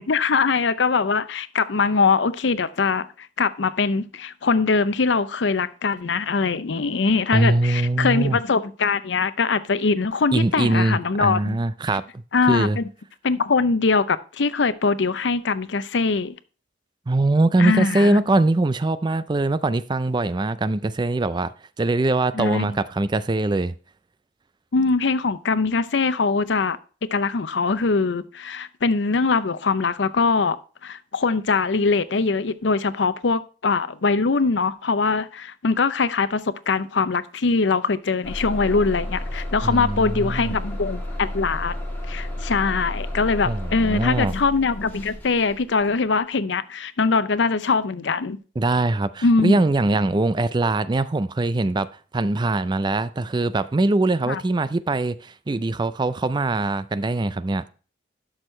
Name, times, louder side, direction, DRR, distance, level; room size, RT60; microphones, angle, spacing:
voice 1, 0.0-11.6 12.3-12.8 13.2-16.3 17.6-18.2 22.3-22.8 24.7-26.8 27.1-30.6 30.8-41.8 42.1-48.4 49.2-49.6 54.3-54.4, left 4 dB, 80° left, 0.6 m, -22 dB
voice 2, 7.3-8.4 10.3-12.8 17.1-21.5 21.8-23.7 39.6-40.6 43.5-44.3 48.6-51.9 52.1-57.6, right 2 dB, 25° right, 0.4 m, -22 dB
Bus / Engine starting, 38.2-46.0, left 1 dB, 10° left, 2.6 m, -32 dB
12.0 x 6.3 x 3.2 m
head